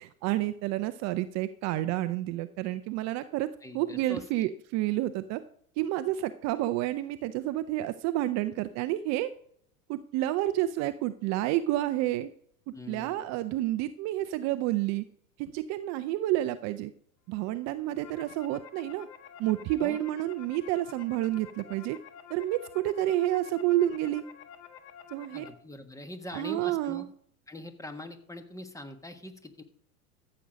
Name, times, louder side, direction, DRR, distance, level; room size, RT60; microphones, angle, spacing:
voice 1, 0.0-5.4 5.8-9.3 9.9-12.3 12.7-15.0 15.4-16.9 17.3-19.1 19.4-22.0 22.3-24.2 25.1-25.5 26.3-27.1, right 14 dB, 40° right, 12 dB, 0.7 m, -29 dB
voice 2, 3.6-4.2 12.7-13.4 19.8-20.0 25.3-27.0 27.5-29.6, left 1 dB, 5° left, 9 dB, 1.3 m, -43 dB
sound 1, 17.7-25.5, left 8 dB, 50° left, 1.6 m, -50 dB
14.0 x 7.8 x 5.2 m, 0.63 s
hypercardioid pair, 95°, 44 cm